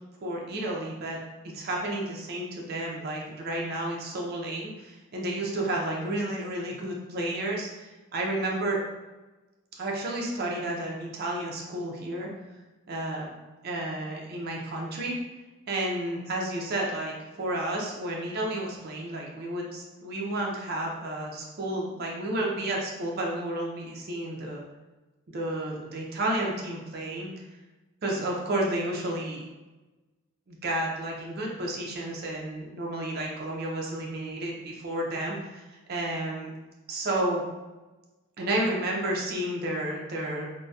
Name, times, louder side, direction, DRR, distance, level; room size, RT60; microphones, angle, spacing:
voice 1, 0.2-1.2 1.5-8.8 9.8-12.3 12.9-13.3 13.6-15.1 15.7-24.6 25.3-27.3 28.0-29.4 30.5-36.5 36.9-37.4 38.4-40.5, right 1 dB, 50° right, -1 dB, 0.4 m, -31 dB
2.7 x 2.0 x 2.3 m, 1.1 s
head